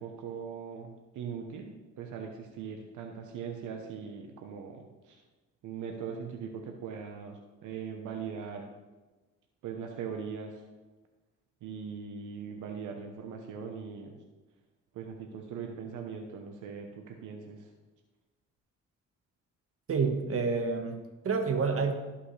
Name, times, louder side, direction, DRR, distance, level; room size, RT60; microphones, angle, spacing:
voice 1, 0.0-5.2 5.6-8.7 9.6-10.6 11.6-14.2 14.9-17.7, right 6 dB, 80° right, 3 dB, 1.0 m, -40 dB
voice 2, 19.9-21.9, right 5 dB, 50° right, 5 dB, 1.4 m, -29 dB
14.0 x 5.6 x 3.3 m, 1.2 s
cardioid pair, 90°, 30 cm